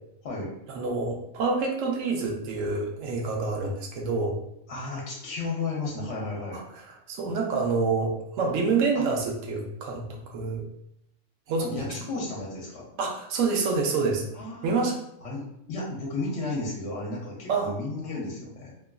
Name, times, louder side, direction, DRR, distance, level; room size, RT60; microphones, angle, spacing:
voice 1, 0.7-4.4 7.1-10.7 11.5-11.9 13.0-14.2 14.6-15.0 17.5-17.7, right 4 dB, 75° right, 1 dB, 0.9 m, -27 dB
voice 2, 4.7-6.6 8.9-9.1 11.6-12.9 14.3-14.8 15.2-15.4 15.7-18.7, left 3 dB, 65° left, -3 dB, 0.9 m, -33 dB
2.9 x 2.4 x 2.2 m, 0.79 s
omnidirectional pair, 1.4 m